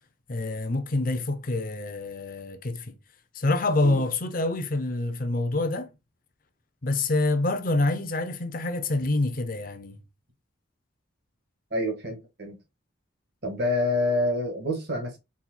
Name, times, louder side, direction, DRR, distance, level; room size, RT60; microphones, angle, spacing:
voice 1, 0.3-2.9 3.3-5.9 6.8-10.0, left 2 dB, 40° left, 0.6 m, -26 dB
voice 2, 11.7-12.6 13.4-15.2, left 1 dB, 50° right, 1.5 m, -27 dB
4.3 x 4.2 x 2.2 m
head